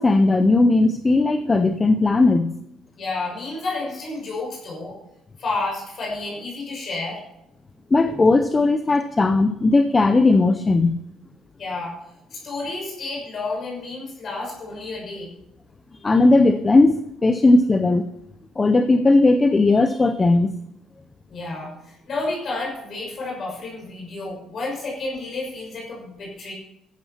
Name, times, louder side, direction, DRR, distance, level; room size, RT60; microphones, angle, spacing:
voice 1, 0.0-2.6 7.9-11.0 16.0-18.1 18.6-20.5, left 2 dB, 15° left, 10 dB, 0.6 m, -17 dB
voice 2, 2.9-4.9 5.4-7.2 11.6-12.0 12.3-15.3 21.3-26.5, left 3 dB, 40° left, -3 dB, 6.0 m, -30 dB
14.5 x 12.0 x 4.3 m, 0.85 s
cardioid pair, 160°, 0 cm